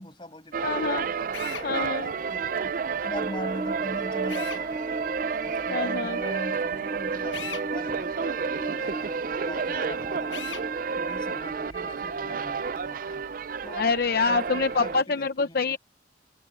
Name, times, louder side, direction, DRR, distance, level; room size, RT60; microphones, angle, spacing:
voice 1, 0.0-4.7 5.4-10.6 11.0-13.3 13.6-13.9 14.2-15.8, left 1 dB, 25° left, 5.9 m, -41 dB
sound 1, 0.5-15.0, right 6 dB, 50° right, 0.4 m, -31 dB
voice 2, 0.6-1.1 1.6-2.1 5.7-6.2 13.8-15.8, left 4 dB, 55° left, 0.6 m, -26 dB
Drill, 1.3-1.7 4.3-4.6 7.3-7.7 10.3-10.7, left 9 dB, 85° left, 1.0 m, -37 dB
sound 2, 3.1-11.7, right 2 dB, 20° right, 0.7 m, -38 dB
head